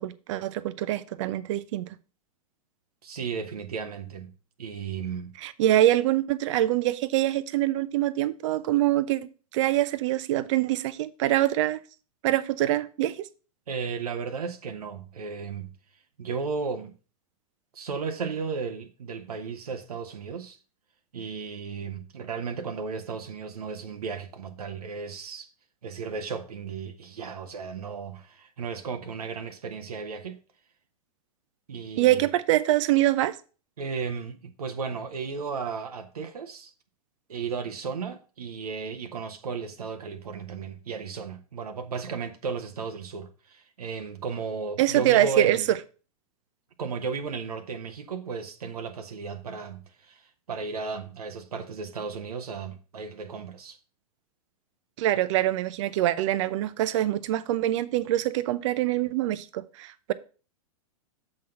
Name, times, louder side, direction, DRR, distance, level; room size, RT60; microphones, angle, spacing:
voice 1, 0.0-1.9 5.4-9.3 9.5-11.8 12.2-13.3 32.0-33.4 44.8-45.8 55.0-60.1, right 14 dB, 55° right, 0.7 m, -24 dB
voice 2, 3.0-4.3 4.6-5.4 13.7-15.8 16.2-16.9 17.7-20.6 21.1-25.5 25.8-30.4 31.7-32.3 33.8-36.7 37.3-45.7 46.8-53.8, right 5 dB, 80° right, 0.9 m, -34 dB
7.4 x 4.0 x 6.2 m
hypercardioid pair, 110°, 19 cm